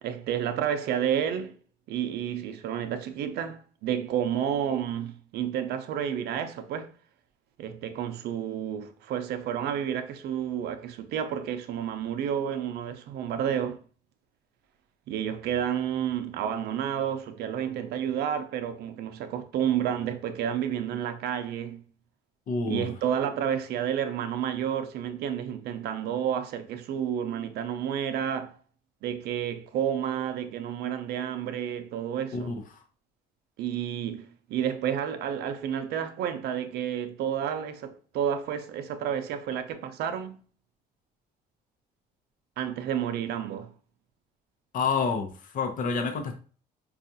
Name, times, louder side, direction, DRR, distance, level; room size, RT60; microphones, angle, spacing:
voice 1, 0.0-1.5 1.9-6.9 7.6-13.8 15.1-21.8 22.7-28.6 29.0-32.6 33.6-40.3 42.6-43.7, right 9 dB, 75° right, 0.6 m, -30 dB
voice 2, 22.5-22.9 32.3-32.5 44.7-46.3, left 5 dB, 55° left, 0.7 m, -28 dB
4.6 x 2.4 x 2.6 m
cardioid pair, 110°, 17 cm